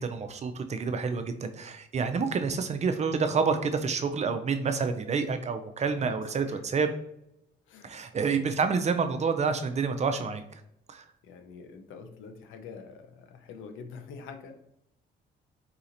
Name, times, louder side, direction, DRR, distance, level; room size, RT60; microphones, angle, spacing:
voice 1, 0.0-6.9 7.8-10.4 10.9-11.0, right 5 dB, 35° right, 8 dB, 0.4 m, -28 dB
voice 2, 7.7-8.3 11.2-14.6, left 5 dB, 80° left, 6 dB, 0.5 m, -46 dB
4.1 x 2.8 x 2.5 m, 0.79 s
cardioid pair, 90°, 20 cm